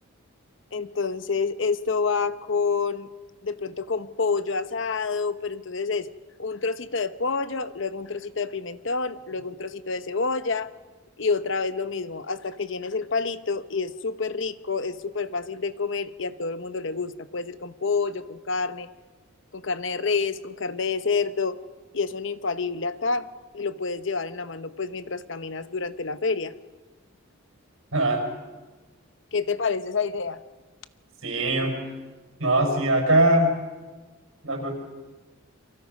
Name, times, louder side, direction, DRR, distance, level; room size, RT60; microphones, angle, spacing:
voice 1, 0.7-3.1 3.4-6.1 6.4-10.7 11.2-18.9 19.5-21.6 21.9-23.3 23.5-26.5 29.3-30.4, left 4 dB, 60° left, 12 dB, 0.9 m, -28 dB
voice 2, 27.9-28.2 31.2-31.7 32.4-33.5 34.4-34.7, right 1 dB, 75° right, 3 dB, 5.6 m, -21 dB
29.5 x 24.0 x 5.4 m, 1.3 s
head